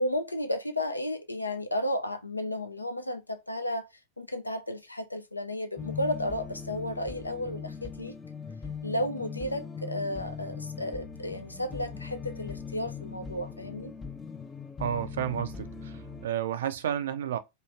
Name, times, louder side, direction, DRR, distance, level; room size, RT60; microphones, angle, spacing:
voice 1, 0.0-3.9 4.2-8.1 8.8-13.9, left 1 dB, 85° left, 0.4 m, -33 dB
sound 1, 5.8-16.3, left 6 dB, 15° left, 0.3 m, -40 dB
voice 2, 14.8-17.4, right 10 dB, 60° right, 0.4 m, -31 dB
3.0 x 2.4 x 2.2 m
figure-of-eight pair, 90°, 0 cm